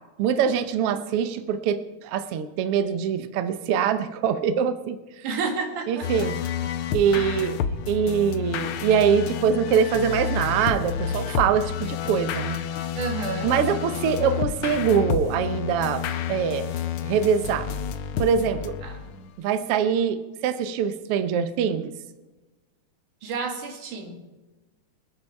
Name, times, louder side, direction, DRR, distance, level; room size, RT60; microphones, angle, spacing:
voice 1, 0.2-5.0 5.9-6.4 6.9-7.6 7.9-12.6 13.4-16.0 16.3-16.7 17.0-17.7 18.2-18.8 19.4-21.9, right 7 dB, 70° right, 10 dB, 1.5 m, -23 dB
voice 2, 5.2-6.3 7.1-7.4 13.0-13.6 18.8-19.3 23.2-24.2, right 4 dB, 85° right, 4 dB, 3.4 m, -31 dB
sound 1, 6.0-19.3, left 8 dB, 75° left, 1.3 m, -30 dB
26.0 x 9.0 x 4.6 m, 1.1 s
omnidirectional pair, 3.5 m